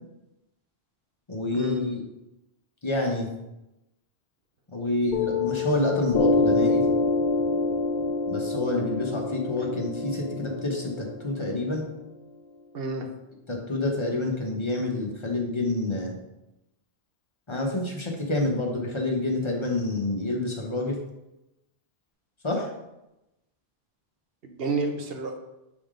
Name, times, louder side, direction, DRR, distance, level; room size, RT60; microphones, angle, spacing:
voice 1, 1.3-2.0 2.8-3.3 4.7-6.9 8.3-11.8 13.5-16.2 17.5-21.0 22.4-22.7, left 2 dB, 30° left, 0 dB, 1.0 m, -28 dB
Piano, 5.1-12.2, left 3 dB, 55° left, 0.5 m, -26 dB
voice 2, 12.7-13.1 24.4-25.4, right 3 dB, 65° right, 4 dB, 1.0 m, -30 dB
7.2 x 3.6 x 3.7 m, 0.94 s
omnidirectional pair, 1.1 m